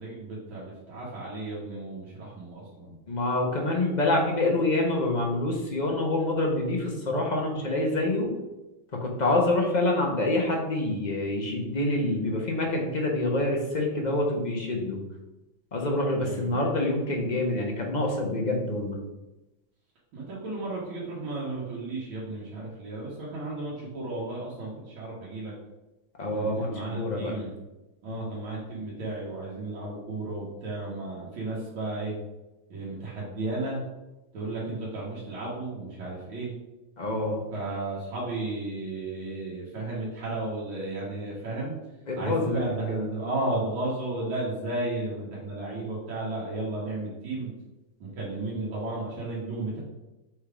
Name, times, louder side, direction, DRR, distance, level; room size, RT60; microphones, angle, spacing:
voice 1, 0.0-3.0 16.2-16.6 20.1-25.5 26.3-27.5 28.0-32.2 32.7-33.8 34.3-36.5 37.5-41.7 42.2-47.5 48.0-49.8, right 2 dB, 85° right, -6 dB, 2.2 m, -34 dB
voice 2, 3.1-8.3 8.9-15.0 15.7-19.0 26.2-26.7 26.9-27.3 28.1-28.2 37.0-37.4 42.1-43.0, left 2 dB, 40° left, 0 dB, 0.6 m, -26 dB
6.2 x 3.5 x 4.9 m, 1.0 s
omnidirectional pair, 2.1 m